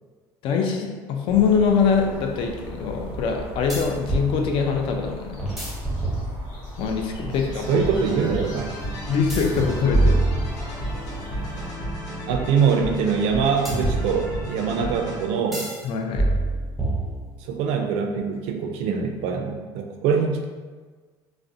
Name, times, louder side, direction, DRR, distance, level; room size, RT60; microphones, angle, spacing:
voice 1, 0.4-5.4 6.8-7.9 9.1-10.2 15.8-16.2, left 6 dB, 60° left, 3 dB, 0.4 m, -23 dB
sound 1, 1.3-11.7, left 1 dB, 80° left, 0.7 m, -37 dB
sound 2, 1.3-1.4 3.7-4.3 5.4-6.7 9.3-11.0 13.6-14.6 15.5-15.8 16.1-17.5, right 2 dB, ahead, 0.5 m, -25 dB
sound 3, 7.6-15.5, equal, 35° left, 0.8 m, -33 dB
voice 2, 7.7-8.8 12.3-15.7 17.4-20.5, right 6 dB, 80° right, 3 dB, 0.4 m, -23 dB
2.4 x 2.0 x 2.5 m, 1.4 s
cardioid pair, 125°, 10 cm